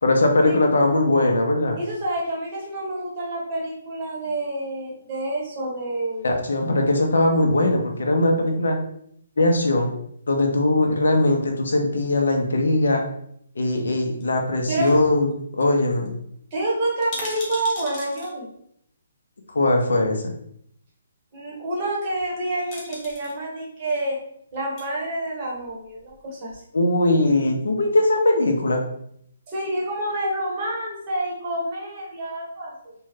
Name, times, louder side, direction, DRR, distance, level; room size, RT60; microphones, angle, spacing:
voice 1, 0.0-1.8 6.2-8.8 9.4-9.9 10.3-13.0 13.6-15.3 15.6-16.1 19.5-20.2 26.7-28.8, left 2 dB, 85° left, 3 dB, 0.7 m, -20 dB
voice 2, 1.8-6.3 14.7-15.0 16.5-18.5 21.3-24.2 24.5-26.6 29.5-32.9, right 1 dB, 20° right, -4 dB, 0.8 m, -28 dB
sound 1, 14.2-15.0 15.3-15.4 15.6-15.8 16.0-16.1 16.9-18.3 19.5-19.6 22.1-22.4 22.7-23.3 24.5-24.9 25.5-26.2 26.5-26.6, left 1 dB, 15° left, 0.5 m, -37 dB
2.7 x 2.3 x 3.1 m, 0.70 s
hypercardioid pair, 175°, 0 cm